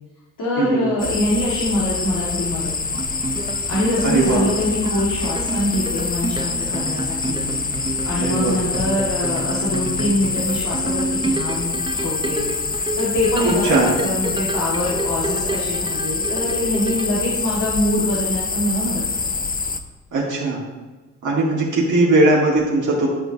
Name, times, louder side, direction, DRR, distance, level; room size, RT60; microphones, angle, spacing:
voice 1, 0.4-3.0 3.7-7.6 8.0-12.5 13.0-19.0, left 1 dB, 60° left, -7 dB, 2.1 m, -24 dB
sound 1, 1.0-19.8, left 4 dB, 25° left, 0.7 m, -26 dB
sound 2, 2.9-17.1, right 3 dB, 15° right, 0.6 m, -29 dB
voice 2, 4.0-4.5 8.2-8.6 13.4-13.9 20.1-20.6 21.2-23.1, right 2 dB, 50° right, -5 dB, 2.1 m, -19 dB
12.0 x 4.5 x 2.9 m, 1.2 s
hypercardioid pair, 45°, 38 cm